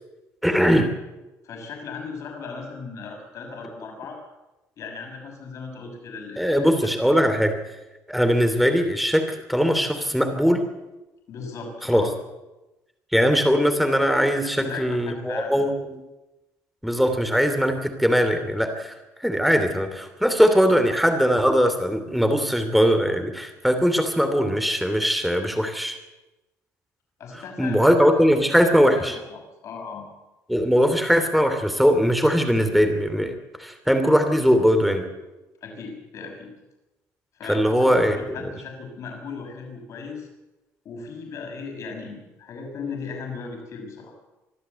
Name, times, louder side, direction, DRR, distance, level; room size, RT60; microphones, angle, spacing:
voice 1, 0.4-0.9 6.4-7.6 8.1-10.6 11.9-12.1 13.1-16.0 16.8-18.9 19.2-26.0 27.6-29.2 30.5-35.1 37.5-38.4, equal, ahead, 7 dB, 2.9 m, -20 dB
voice 2, 1.4-4.2 4.8-7.2 11.3-12.1 14.4-15.7 27.2-28.1 28.9-30.1 35.6-36.5 37.3-40.3 40.8-44.1, left 5 dB, 55° left, 2 dB, 6.1 m, -37 dB
24.5 x 13.0 x 8.2 m, 1.0 s
cardioid pair, 135°, 6 cm